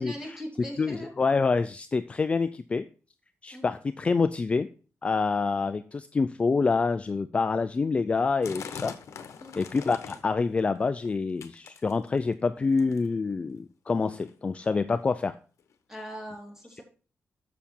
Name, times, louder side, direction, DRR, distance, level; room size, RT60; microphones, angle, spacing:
voice 1, 0.0-1.1 3.5-3.7 9.4-9.6 15.9-16.8, equal, 10° right, -1 dB, 2.4 m, -40 dB
voice 2, 0.8-2.9 3.4-4.7 5.0-8.9 9.6-15.4, left 4 dB, 25° left, 11 dB, 0.3 m, -27 dB
sound 1, 8.4-10.4 10.7-11.1 11.4-12.3 12.8-13.1 13.9-14.0 14.2-14.3 14.9-15.0 15.7-15.8, left 7 dB, 85° left, 0.9 m, -41 dB
7.2 x 6.8 x 4.3 m, 0.38 s
wide cardioid pair, 175°, 5 cm